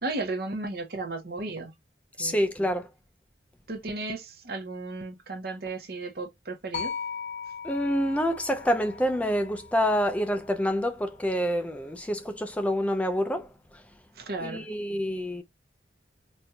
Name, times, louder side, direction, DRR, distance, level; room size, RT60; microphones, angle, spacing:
voice 1, 0.0-1.7 2.2-2.4 3.7-6.9 14.2-14.7, right 3 dB, 55° right, 0.8 m, -34 dB
voice 2, 2.2-2.9 7.6-13.5 13.7-13.8 14.4-15.4, equal, 5° left, 0.3 m, -27 dB
sound 1, 6.7-10.9, left 6 dB, 45° left, 1.0 m, -39 dB
4.2 x 2.5 x 2.2 m
head